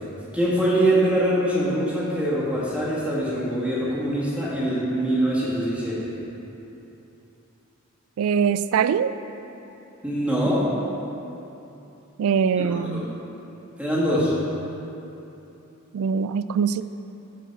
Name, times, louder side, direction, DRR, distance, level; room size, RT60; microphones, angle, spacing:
voice 1, 0.3-6.1 10.0-10.7 12.6-13.0 13.8-14.3, right 1 dB, 5° right, -8 dB, 1.9 m, -23 dB
voice 2, 8.2-9.1 12.2-13.1 15.9-16.8, right 7 dB, 85° right, 14 dB, 0.3 m, -22 dB
13.5 x 4.5 x 4.6 m, 2.9 s
head